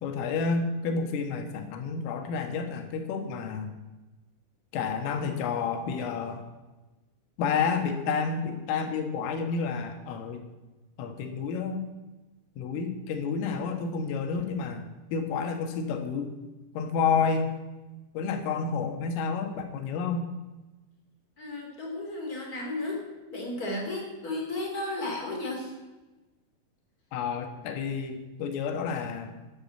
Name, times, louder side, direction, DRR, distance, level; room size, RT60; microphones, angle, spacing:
voice 1, 0.0-3.7 4.7-6.4 7.4-10.4 11.0-11.9 12.6-14.8 15.1-16.3 16.7-17.5 18.2-20.3 27.1-29.4, left 5 dB, 80° left, 6 dB, 4.1 m, -30 dB
voice 2, 21.4-23.0 23.3-25.7, left 2 dB, 20° left, -1 dB, 3.0 m, -33 dB
12.5 x 10.0 x 7.4 m, 1.1 s
omnidirectional pair, 5.9 m